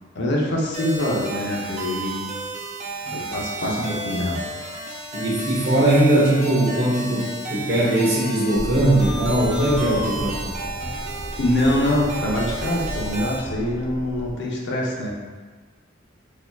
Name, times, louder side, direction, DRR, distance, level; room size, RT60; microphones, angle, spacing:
voice 1, 0.1-2.2 3.0-4.4 11.4-15.1, left 1 dB, 60° left, -3 dB, 0.7 m, -24 dB
sound 1, 0.7-13.4, right 2 dB, 35° right, 0.5 m, -33 dB
voice 2, 5.1-10.4, right 1 dB, 55° right, -5 dB, 0.9 m, -20 dB
sound 2, 8.5-14.3, equal, 90° left, 0.9 m, -33 dB
4.2 x 2.8 x 2.3 m, 1.4 s
head